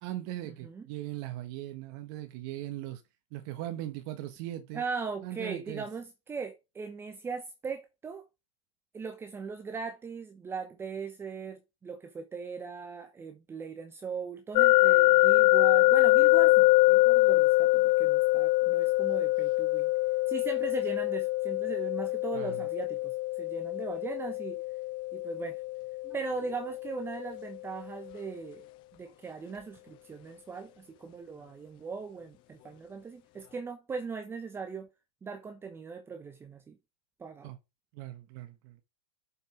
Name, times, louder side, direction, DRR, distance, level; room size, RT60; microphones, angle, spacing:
voice 1, 0.0-3.0 3.3-4.8 5.2-5.8 22.3-22.7 37.4-37.6 37.9-38.8, right 14 dB, 50° right, 1.4 m, -39 dB
voice 2, 4.7-8.2 8.9-19.9 20.3-24.6 25.1-25.6 26.0-28.6 29.0-34.9 35.2-36.8 37.2-37.5, right 5 dB, 15° right, 1.0 m, -39 dB
sound 1, 14.6-27.5, left 20 dB, 30° left, 0.4 m, -24 dB
7.0 x 5.3 x 6.2 m
hypercardioid pair, 130°, 16 cm